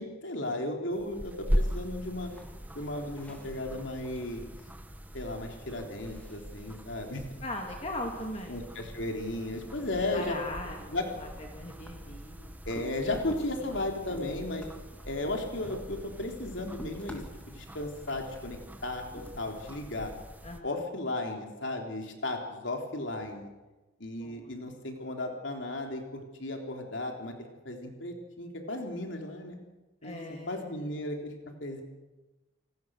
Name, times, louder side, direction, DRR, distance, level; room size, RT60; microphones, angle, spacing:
voice 1, 0.0-2.3 2.8-4.6 5.1-7.2 8.5-10.4 10.9-11.1 12.7-14.6 15.1-20.1 20.6-23.5 24.0-27.3 27.7-29.6 30.0-30.2 30.5-31.8, left 2 dB, 70° left, 2 dB, 3.6 m, -35 dB
sound 1, 0.9-20.6, equal, 10° right, 1.4 m, -40 dB
sound 2, 1.5-20.1, equal, 5° left, 3.0 m, -52 dB
voice 2, 7.4-8.6 10.1-12.5 13.6-13.9 20.4-20.7 24.2-24.5 30.0-30.7, left 1 dB, 35° left, 1 dB, 2.5 m, -39 dB
28.5 x 19.0 x 6.5 m, 1.1 s
head